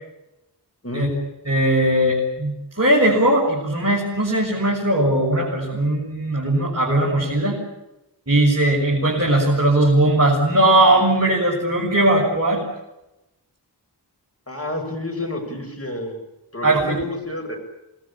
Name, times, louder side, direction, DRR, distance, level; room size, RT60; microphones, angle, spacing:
voice 1, 1.5-7.6 8.3-12.6 16.6-17.0, right 1 dB, 35° right, -4 dB, 7.0 m, -19 dB
voice 2, 14.5-16.2 16.5-17.6, left 1 dB, 35° left, 4 dB, 7.4 m, -29 dB
27.5 x 21.0 x 8.7 m, 0.93 s
wide cardioid pair, 70°, 42 cm